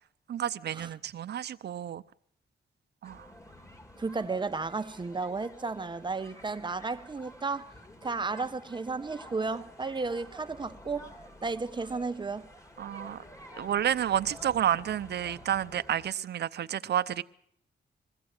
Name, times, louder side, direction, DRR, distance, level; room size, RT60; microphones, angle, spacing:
voice 1, 0.3-2.0 3.0-3.3 12.8-13.2 13.6-17.2, right 10 dB, 70° right, 0.8 m, -30 dB
sound 1, 3.0-16.1, equal, 15° left, 2.8 m, -50 dB
voice 2, 4.0-7.7 8.0-11.1 11.4-12.5, right 4 dB, 25° right, 0.9 m, -33 dB
21.5 x 15.5 x 8.9 m
cardioid pair, 100°, 18 cm